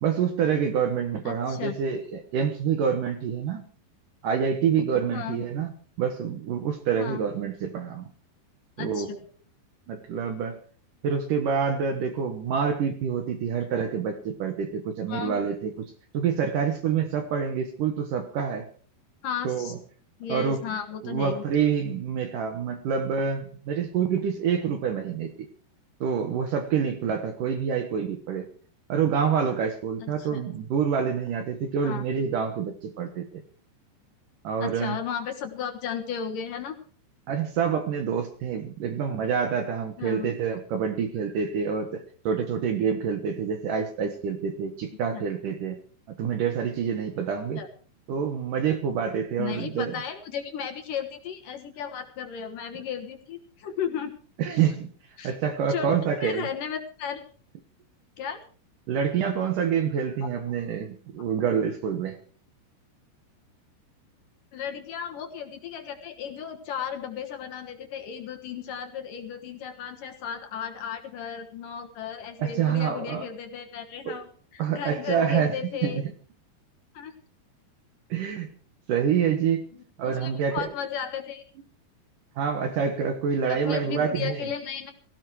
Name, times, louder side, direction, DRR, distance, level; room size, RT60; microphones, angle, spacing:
voice 1, 0.0-3.6 4.2-5.7 6.0-8.1 8.8-9.1 9.9-10.6 11.0-15.7 16.1-18.7 19.4-19.7 20.3-20.6 21.0-25.5 26.0-28.5 28.9-33.4 34.4-35.0 37.3-45.8 46.1-47.6 48.1-50.0 54.4-54.9 55.2-56.5 58.9-62.2 72.4-73.3 74.1-74.2 74.6-75.6 75.8-76.1 78.1-78.5 78.9-79.7 80.0-80.7 82.4-84.5, right 7 dB, 65° right, 8 dB, 2.3 m, -27 dB
voice 2, 1.3-1.8 5.1-5.4 7.0-7.3 8.8-9.2 15.1-15.4 19.2-19.7 20.2-21.4 30.0-30.4 31.8-32.0 34.6-36.7 40.0-40.3 45.1-45.2 47.6-47.7 49.4-54.1 54.5-54.6 55.2-55.4 55.7-55.9 56.2-57.2 58.2-58.4 64.5-76.0 76.9-77.1 79.7-81.4 83.5-84.9, left 8 dB, 60° left, 5 dB, 2.5 m, -34 dB
17.0 x 16.5 x 4.7 m, 0.43 s
omnidirectional pair, 4.9 m